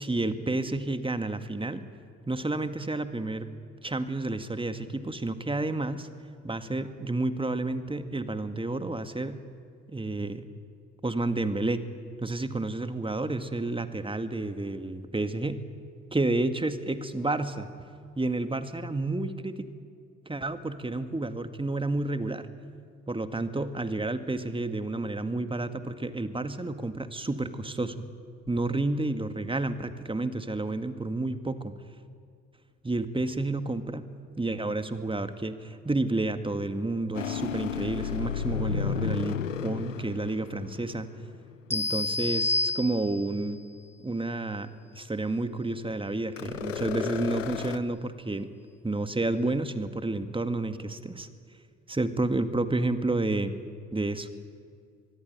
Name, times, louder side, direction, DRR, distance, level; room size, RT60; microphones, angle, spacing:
voice 1, 0.0-1.8 2.3-3.5 3.8-6.1 6.4-9.4 9.9-10.5 11.0-11.8 12.2-15.6 16.1-17.7 18.2-19.6 20.3-22.5 23.1-27.9 28.5-31.7 32.8-34.1 34.4-41.1 41.7-43.6 44.0-48.5 48.8-51.3 51.9-53.5 53.9-54.3, right 2 dB, 15° right, 9 dB, 2.0 m, -30 dB
sound 1, 37.1-41.4 46.4-47.8, left 7 dB, 90° left, 0.7 m, -32 dB
sound 2, 41.7-43.4, left 2 dB, 5° left, 1.2 m, -29 dB
24.5 x 22.0 x 9.0 m, 2.3 s
figure-of-eight pair, 50°, 37 cm